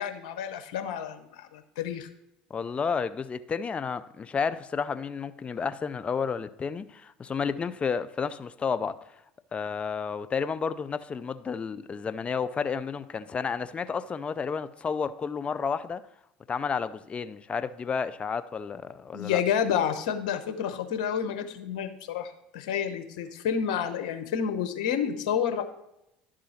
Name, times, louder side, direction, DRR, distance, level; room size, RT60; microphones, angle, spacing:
voice 1, 0.0-2.1 19.1-25.6, left 8 dB, 75° left, 0.9 m, -29 dB
voice 2, 2.5-9.0 9.5-16.1 16.5-19.4, left 6 dB, 30° left, 0.5 m, -31 dB
11.0 x 3.8 x 5.7 m
hypercardioid pair, 80°, 4 cm